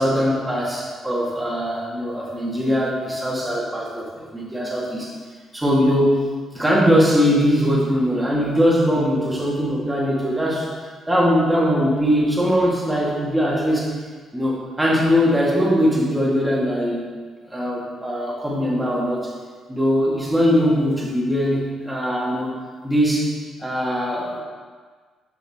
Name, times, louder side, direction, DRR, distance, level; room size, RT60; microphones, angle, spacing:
voice 1, 0.0-5.1 5.5-6.2 6.5-10.7 11.1-13.9 14.3-17.1 17.5-19.3 19.7-22.5 22.8-23.3 23.6-24.4, equal, 10° right, -5 dB, 1.9 m, -21 dB
6.9 x 5.5 x 3.6 m, 1.6 s
cardioid pair, 90°, 0 cm